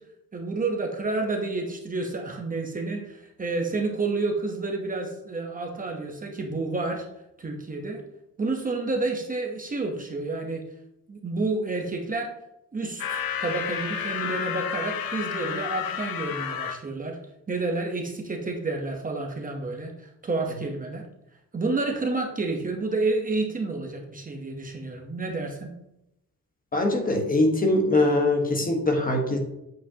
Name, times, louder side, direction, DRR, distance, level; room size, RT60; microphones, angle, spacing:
voice 1, 0.3-7.0 7.4-8.0 8.4-10.6 11.1-12.3 12.7-17.2 17.5-21.0 21.5-25.7, right 3 dB, 25° right, 2 dB, 0.9 m, -29 dB
sound 1, 13.0-16.8, left 8 dB, 85° left, 0.8 m, -31 dB
voice 2, 26.7-29.4, left 2 dB, 25° left, 2 dB, 1.3 m, -22 dB
8.0 x 7.7 x 2.8 m, 0.85 s
wide cardioid pair, 160°, 34 cm